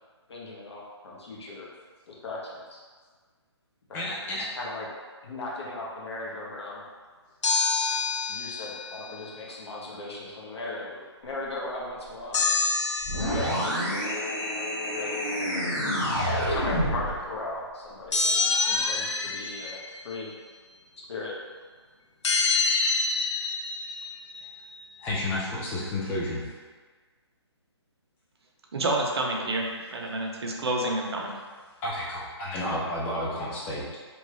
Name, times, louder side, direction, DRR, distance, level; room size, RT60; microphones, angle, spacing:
voice 1, 0.3-1.7 2.1-2.8 3.9-4.0 4.6-4.9 5.2-6.8 8.3-12.5 13.1-14.0 14.9-15.1 16.3-20.3 21.1-21.3, left 2 dB, 65° left, -4 dB, 0.9 m, -37 dB
voice 2, 3.9-4.5 25.0-26.4 31.8-34.0, left 1 dB, 10° left, -6 dB, 0.5 m, -31 dB
sound 1, 7.4-9.1 12.3-13.8 18.1-20.0 22.2-24.4, left 4 dB, 85° left, 0.4 m, -27 dB
sound 2, 13.0-17.2, equal, 40° left, 0.9 m, -28 dB
voice 3, 28.7-31.3, right 2 dB, 65° right, 0 dB, 0.6 m, -28 dB
3.1 x 2.3 x 3.0 m, 1.5 s
figure-of-eight pair, 145°, 15 cm